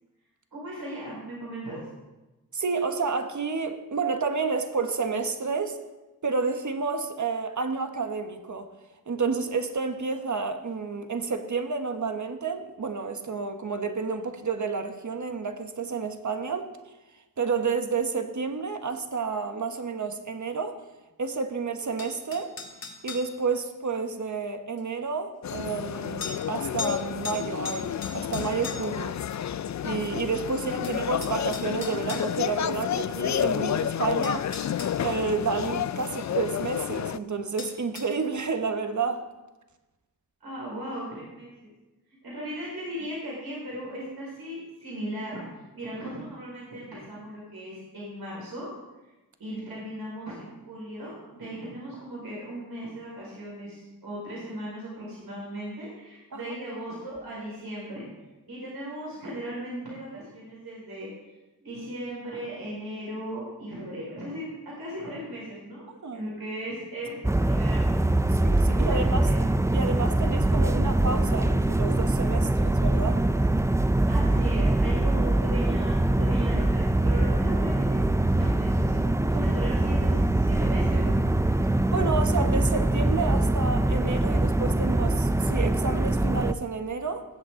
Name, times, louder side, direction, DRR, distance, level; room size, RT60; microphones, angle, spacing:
voice 1, 0.5-1.8 30.6-31.1 40.4-41.7 42.2-45.4 45.7-48.7 49.4-58.0 58.5-61.1 61.6-68.4 68.7-69.4 74.1-78.0 78.3-81.3, right 1 dB, 70° right, -5 dB, 5.2 m, -37 dB
voice 2, 2.5-5.8 6.2-8.7 9.1-16.7 17.4-20.8 21.2-22.5 23.0-29.2 29.8-34.6 35.0-39.3 56.3-56.5 66.0-66.3 68.3-69.2 69.7-73.2 81.9-87.2, right 4 dB, 50° right, 7 dB, 1.3 m, -30 dB
sound 1, 22.0-23.3 24.8-24.9 26.2-26.4 26.8-27.0 27.2-29.0 30.4-30.5 30.8-32.3 33.7-33.8 34.2-35.0 37.6-38.1, left 5 dB, 65° left, 2.1 m, -38 dB
sound 2, 25.4-37.2, left 9 dB, 50° left, 0.4 m, -30 dB
sound 3, 67.2-86.5, right 1 dB, 10° right, 0.5 m, -23 dB
19.5 x 8.1 x 3.8 m, 1.1 s
cardioid pair, 50°, 38 cm